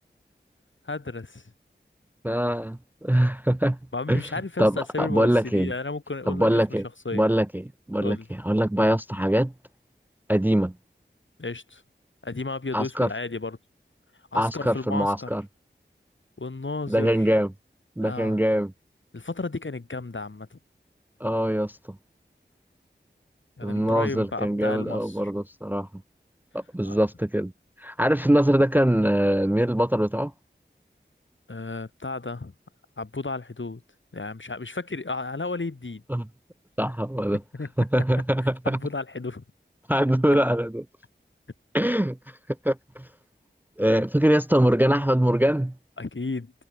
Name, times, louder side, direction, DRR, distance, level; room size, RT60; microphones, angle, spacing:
voice 1, 0.8-1.4 3.9-6.6 7.0-7.2 8.0-8.3 11.4-11.8 12.2-13.6 14.3-15.3 16.4-17.3 18.0-18.4 19.1-20.6 23.6-25.2 26.8-27.0 31.5-32.5 33.0-33.8 34.1-36.0 37.5-37.7 38.6-39.4 46.0-46.5, left 3 dB, 80° left, 3.1 m, -33 dB
voice 2, 2.2-3.8 4.1-4.2 4.6-5.7 6.3-6.9 7.1-9.5 10.3-10.7 12.7-13.1 14.3-15.4 16.9-17.5 18.0-18.7 21.2-22.0 23.6-25.9 26.5-27.5 27.8-30.3 36.1-36.3 36.8-37.4 37.8-38.8 39.9-40.9 41.7-42.2 42.6-43.1 43.8-45.7, equal, 10° right, 0.4 m, -23 dB
wide cardioid pair, 45°, 20 cm